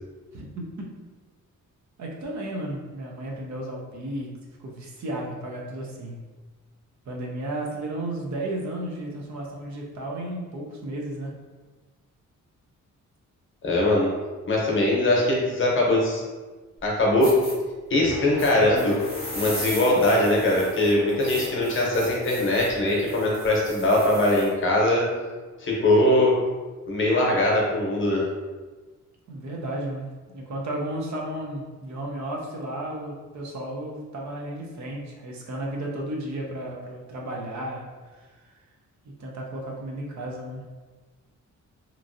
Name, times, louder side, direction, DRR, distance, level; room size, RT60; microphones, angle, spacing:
voice 1, 0.3-0.9 2.0-6.2 7.1-11.4 29.3-37.8 38.1-38.3 39.0-40.6, right 1 dB, 65° right, -1 dB, 0.6 m, -33 dB
voice 2, 13.6-14.1 14.5-16.2 16.8-17.3 17.9-19.0 19.3-25.1 25.6-26.3 26.9-28.2, left 1 dB, 40° left, -3 dB, 0.8 m, -21 dB
sound 1, 16.8-16.9 17.2-17.5 18.4-24.5, equal, 20° right, 0.9 m, -38 dB
sound 2, 18.1-25.9 26.3-26.6, left 5 dB, 75° left, 0.5 m, -38 dB
2.9 x 2.5 x 2.6 m, 1.3 s
wide cardioid pair, 135°, 31 cm